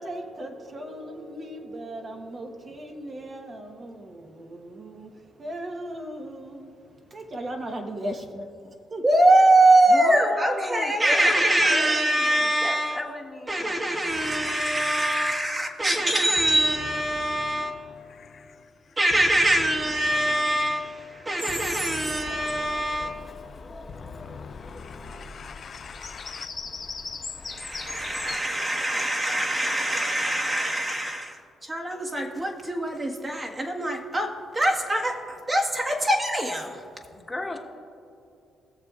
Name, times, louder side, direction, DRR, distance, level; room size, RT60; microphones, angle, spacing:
voice 1, 0.0-9.0, right 1 dB, 40° right, 1.1 m, -37 dB
voice 2, 9.0-13.0 13.5-17.8 19.0-23.2 27.4-36.8, right 1 dB, 25° right, 1.4 m, -23 dB
voice 3, 9.9-11.4 11.7-14.1 37.1-37.6, left 2 dB, 15° left, 1.2 m, -35 dB
voice 4, 14.1-15.2 16.5-26.5, left 6 dB, 55° left, 0.4 m, -44 dB
Bird vocalization bird call bird song, 22.0-28.4, left 4 dB, 35° left, 1.2 m, -40 dB
20.5 x 6.9 x 2.4 m
cardioid pair, 90°, 0 cm